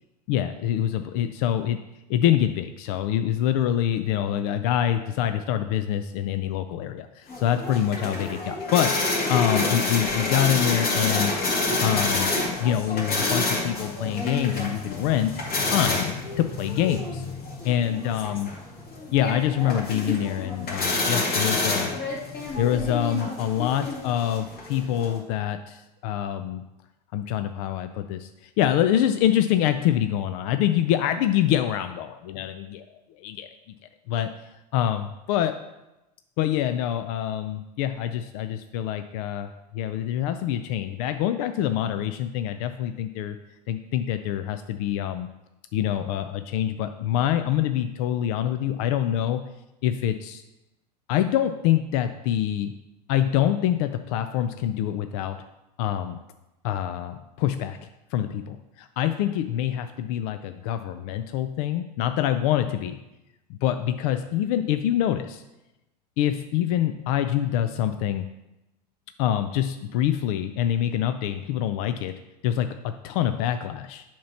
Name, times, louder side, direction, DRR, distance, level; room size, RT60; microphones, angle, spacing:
voice 1, 0.3-1.8 2.1-11.3 11.7-15.3 15.6-17.2 17.6-18.5 19.1-21.9 22.6-26.6 27.1-32.8 33.2-33.5 34.1-34.3 34.7-35.6 36.4-43.4 43.7-45.3 45.7-49.4 49.8-50.4 51.1-52.7 53.1-55.4 55.8-56.2 56.6-57.8 58.1-63.0 63.5-65.4 66.2-68.3 69.2-72.1 72.4-74.0, left 11 dB, 60° left, 9 dB, 0.4 m, -25 dB
sound 1, 7.3-25.2, left 2 dB, 45° left, 2.1 m, -28 dB
7.3 x 3.0 x 5.6 m, 0.96 s
hypercardioid pair, 100°, 21 cm